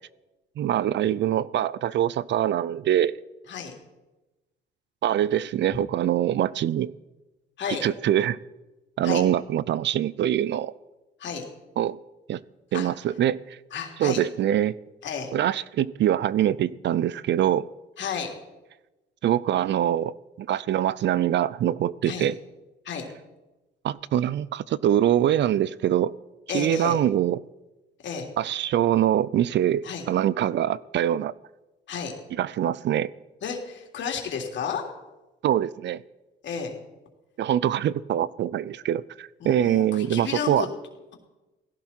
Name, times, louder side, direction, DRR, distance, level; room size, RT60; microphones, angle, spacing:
voice 1, 0.6-3.2 5.0-6.9 7.8-8.4 9.0-10.7 11.8-12.0 12.3-12.4 12.7-13.6 14.0-14.8 15.3-17.7 19.2-22.4 23.8-26.1 26.5-27.4 28.4-31.3 32.4-33.1 35.4-36.0 37.4-40.7, right 11 dB, 65° right, 20 dB, 0.5 m, -24 dB
voice 2, 13.7-14.2 15.0-15.3 18.0-18.3 22.0-22.3 22.8-23.1 26.5-27.0 28.0-28.3 29.8-30.0 31.9-32.1 33.4-34.8 36.4-36.7 39.4-40.7, left 6 dB, 65° left, 2 dB, 3.3 m, -32 dB
17.5 x 16.5 x 4.5 m, 1.1 s
cardioid pair, 90°, 20 cm